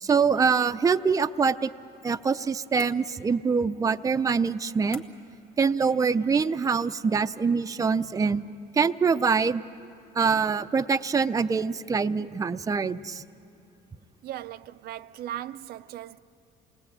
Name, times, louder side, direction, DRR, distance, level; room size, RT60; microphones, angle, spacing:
voice 1, 0.0-1.7 2.0-5.0 5.6-8.4 8.7-9.6 10.1-13.2, right 5 dB, 20° right, 0.5 m, -24 dB
sound 1, 2.8-3.5 4.9-5.4, left 5 dB, 60° left, 2.0 m, -48 dB
voice 2, 14.2-16.2, right 12 dB, 65° right, 0.5 m, -38 dB
28.5 x 19.5 x 8.7 m
cardioid pair, 110°, 17 cm